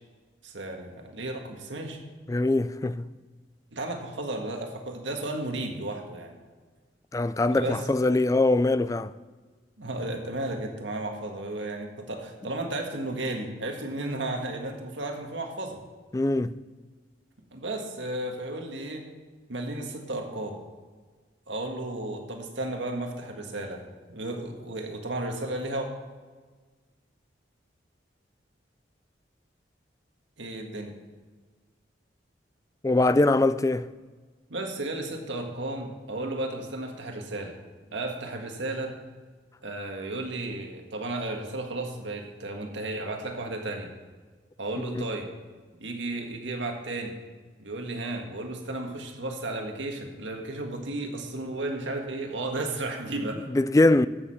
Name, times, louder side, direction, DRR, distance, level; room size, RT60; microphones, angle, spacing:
voice 1, 0.4-2.0 3.7-6.3 7.5-7.9 9.8-15.8 17.5-19.1 19.5-20.6 21.5-25.9 30.4-30.9 34.5-37.6 37.9-39.0 39.6-43.9 44.6-45.3 45.8-47.1 47.6-53.5 54.0-54.1, right 2 dB, 80° right, 1.7 m, -33 dB
voice 2, 2.3-3.0 7.1-9.1 16.1-16.5 32.8-33.9 53.5-54.1, left 2 dB, 15° left, 0.3 m, -22 dB
14.0 x 6.6 x 5.7 m
head